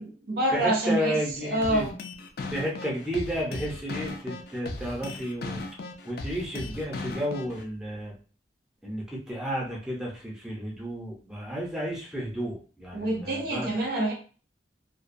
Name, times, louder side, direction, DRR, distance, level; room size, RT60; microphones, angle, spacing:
voice 1, 0.0-2.0 12.9-14.1, right 1 dB, 60° right, 0 dB, 0.6 m, -27 dB
voice 2, 0.5-1.8 2.5-5.6 6.0-8.1 8.8-13.7, equal, 5° right, -4 dB, 0.6 m, -32 dB
sound 1, 1.6-7.6, left 3 dB, 55° left, 0.4 m, -37 dB
2.3 x 2.2 x 2.5 m, 0.38 s
head